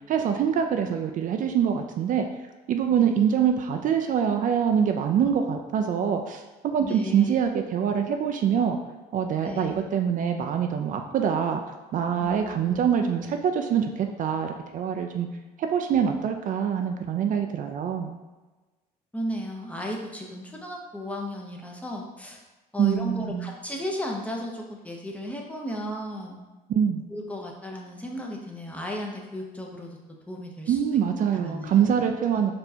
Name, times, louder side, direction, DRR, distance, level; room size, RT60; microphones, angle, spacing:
voice 1, 0.1-2.3 2.7-8.8 9.1-11.6 11.9-15.3 15.6-18.2 22.8-23.5 26.7-27.0 30.7-32.5, right 8 dB, 50° right, 5 dB, 0.4 m, -24 dB
voice 2, 6.8-7.3 9.4-9.8 12.2-12.9 19.1-22.4 22.7-26.4 27.1-30.0 30.3-30.8 31.3-32.4, left 1 dB, 10° left, 0 dB, 0.7 m, -35 dB
4.3 x 3.1 x 2.7 m, 1.2 s
cardioid pair, 110°, 17 cm